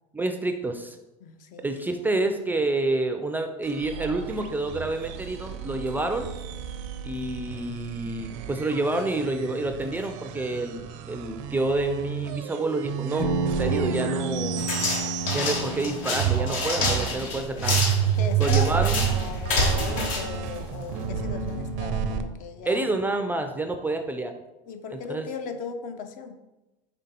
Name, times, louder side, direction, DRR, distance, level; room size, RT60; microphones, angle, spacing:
voice 1, 0.1-1.0 1.6-6.3 7.0-14.6 15.3-17.8 18.4-19.1 21.5-21.7 22.7-24.3 24.9-25.3, right 2 dB, 10° right, 6 dB, 0.3 m, -28 dB
voice 2, 1.2-2.1 18.1-22.9 24.7-26.4, left 5 dB, 50° left, 7 dB, 0.6 m, -37 dB
sound 1, 3.6-15.9 16.2-22.2, right 10 dB, 65° right, 0.5 m, -30 dB
Bass guitar, 13.2-17.5, right 1 dB, 35° left, 1.1 m, -31 dB
sound 2, 14.6-21.1, left 2 dB, 75° left, 1.2 m, -28 dB
5.1 x 3.3 x 2.9 m, 1.0 s
hypercardioid pair, 95°, 17 cm